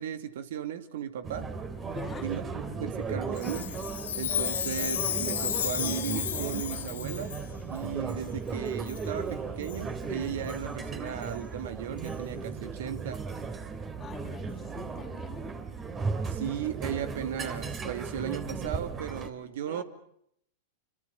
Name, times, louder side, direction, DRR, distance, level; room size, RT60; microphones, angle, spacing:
voice 1, 0.0-1.5 2.2-3.7 4.2-7.3 7.7-13.2 16.3-19.8, right 9 dB, 70° right, 10 dB, 2.5 m, -36 dB
sound 1, 1.2-19.3, right 4 dB, 25° right, 3.2 m, -36 dB
voice 2, 1.9-2.3 14.0-15.6 19.7-19.8, left 6 dB, 20° left, -5 dB, 3.1 m, -45 dB
Chime, 3.3-7.4 8.1-8.2 8.9-9.1 9.6-9.8 10.5-10.6 11.2-11.3 12.0-12.1, left 10 dB, 80° left, 2.2 m, -33 dB
28.0 x 25.5 x 7.1 m, 0.72 s
hypercardioid pair, 105°, 0 cm